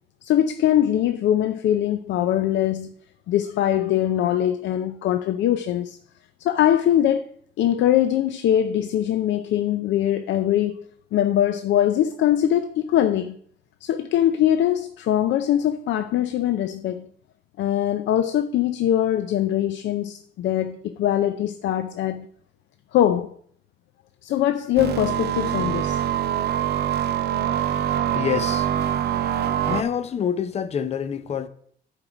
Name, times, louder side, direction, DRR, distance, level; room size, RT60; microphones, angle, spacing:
voice 1, 0.2-2.9 3.3-6.0 6.4-7.2 7.6-13.4 13.8-17.1 17.6-22.3 22.9-23.3 24.2-26.0, left 11 dB, 85° left, 0.5 m, -22 dB
sound 1, 24.8-29.8, right 10 dB, 60° right, 0.7 m, -24 dB
voice 2, 28.1-28.7 29.6-31.5, left 8 dB, 35° left, 0.5 m, -27 dB
11.5 x 4.7 x 4.9 m
cardioid pair, 155°, 18 cm